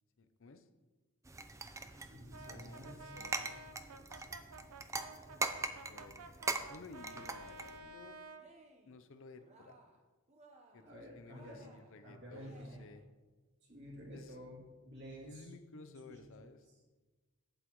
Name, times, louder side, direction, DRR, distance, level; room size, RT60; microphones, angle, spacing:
voice 1, 0.2-0.7 2.5-3.4 5.9-6.2 6.7-8.2 8.8-9.8 10.7-13.0 14.1-14.4 15.2-16.7, left 3 dB, 60° left, 9 dB, 0.6 m, -55 dB
sound 1, 1.3-7.8, right 3 dB, 15° right, 0.4 m, -42 dB
voice 2, 2.0-4.2 10.8-11.7 12.0-12.8 13.7-15.5 15.9-16.2 16.7-16.8, equal, 50° right, -3 dB, 2.7 m, -52 dB
Brass instrument, 2.3-8.5, right 2 dB, 90° right, 0.7 m, -52 dB
Cheering, 8.3-9.0 9.3-10.0 10.3-11.0 11.3-13.1, right 2 dB, 30° right, 1.0 m, -62 dB
11.5 x 8.2 x 3.1 m, 1.3 s
head